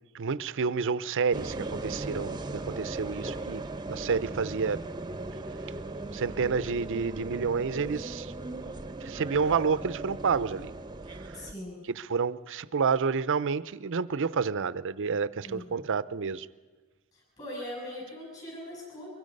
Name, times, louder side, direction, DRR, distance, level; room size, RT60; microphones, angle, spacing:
voice 1, 0.1-4.8 6.1-8.3 9.0-10.7 11.2-11.5 11.9-16.5, right 5 dB, 60° right, 17 dB, 0.6 m, -29 dB
sound 1, 1.3-11.5, right 2 dB, 20° right, 0.8 m, -38 dB
voice 2, 11.3-11.8 15.4-15.8 17.1-19.1, left 1 dB, 35° left, -3 dB, 7.7 m, -41 dB
23.5 x 22.5 x 5.4 m, 1.4 s
head